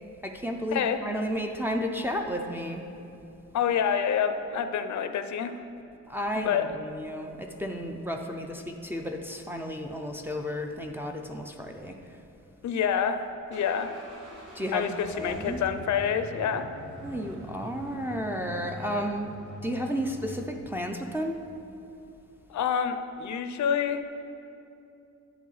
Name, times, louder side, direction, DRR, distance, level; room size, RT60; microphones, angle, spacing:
voice 1, 0.2-2.8 6.1-12.2 14.5-15.6 16.4-16.5 17.0-19.3 19.6-21.4, equal, 5° right, 1 dB, 0.4 m, -32 dB
voice 2, 3.5-5.5 6.3-6.7 12.6-13.2 13.5-13.9 14.7-16.6 19.0-19.1 22.5-24.0, left 8 dB, 65° left, 9 dB, 0.5 m, -27 dB
sound 1, 12.5-20.4, equal, 65° right, 2.5 m, -44 dB
10.0 x 8.1 x 4.0 m, 2.7 s
wide cardioid pair, 170°, 31 cm